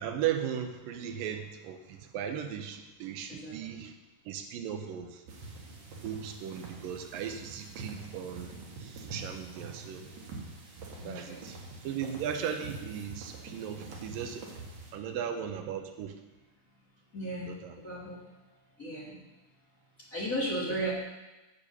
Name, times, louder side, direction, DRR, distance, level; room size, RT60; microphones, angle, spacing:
voice 1, 0.0-3.9 4.3-5.2 6.0-8.5 8.8-10.1 11.0-11.6 11.8-14.4 14.9-16.1 17.3-17.7, right 8 dB, 80° right, 6 dB, 2.5 m, -37 dB
voice 2, 3.3-3.9 11.0-11.5 17.1-17.5 17.8-18.2 18.8-19.2 20.1-20.9, right 1 dB, 30° left, -4 dB, 1.7 m, -35 dB
sound 1, 5.3-14.9, right 3 dB, 60° right, 3.0 m, -45 dB
8.7 x 8.4 x 6.9 m, 1.1 s
omnidirectional pair, 4.1 m